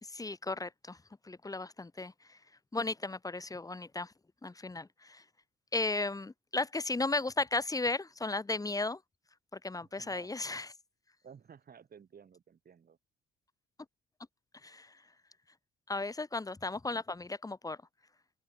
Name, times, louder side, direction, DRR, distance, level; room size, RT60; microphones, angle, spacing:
voice 1, 0.0-1.0 1.2-2.4 2.7-4.1 4.4-5.2 5.7-9.0 9.5-10.7 14.6-15.0 15.9-17.8, left 3 dB, 15° left, 1.6 m, -35 dB
voice 2, 9.8-10.3 11.2-13.0, right 7 dB, 50° right, 6.3 m, -55 dB
cardioid pair, 90°, 20 cm